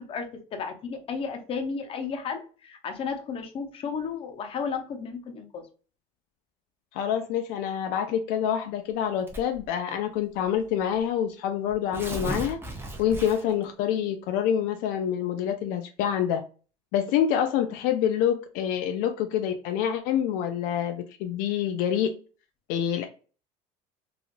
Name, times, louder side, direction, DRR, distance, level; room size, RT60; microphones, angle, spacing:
voice 1, 0.0-5.6, left 5 dB, 35° left, 5 dB, 0.7 m, -33 dB
voice 2, 6.9-12.6 13.0-16.4 16.9-22.1 22.7-23.0, left 9 dB, 70° left, 6 dB, 0.4 m, -26 dB
Tearing, 9.3-9.7 10.5-10.6 10.9-11.0 11.7-13.6, right 1 dB, 15° right, 0.7 m, -35 dB
2.9 x 2.4 x 2.5 m, 0.37 s
cardioid pair, 125°, 15 cm